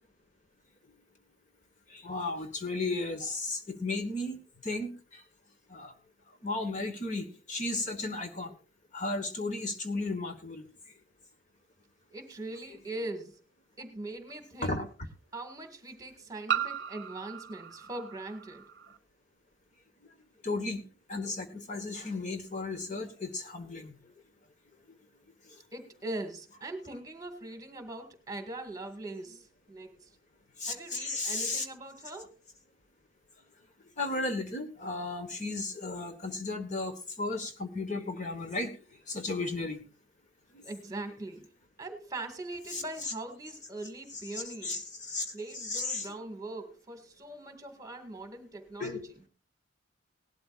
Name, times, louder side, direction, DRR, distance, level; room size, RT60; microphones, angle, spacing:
voice 1, 1.9-4.4 4.6-5.2 5.7-5.9 6.4-8.5 8.9-10.6 14.6-14.9 20.4-20.8 21.1-23.9 30.6-31.6 34.0-38.8 39.1-39.8 40.5-40.6 42.7-43.1 44.3-45.2 45.6-46.1 48.8-49.0, left 2 dB, 40° left, 6 dB, 1.3 m, -34 dB
voice 2, 12.1-13.4 13.8-14.9 15.3-18.6 25.7-30.1 30.7-32.3 40.6-41.5 41.8-44.9 45.3-49.0, right 2 dB, 20° right, 6 dB, 1.9 m, -41 dB
sound 1, 12.5-12.6 14.3-14.4 16.5-19.0, right 8 dB, 55° right, 0.8 m, -36 dB
18.5 x 12.0 x 2.5 m, 0.33 s
head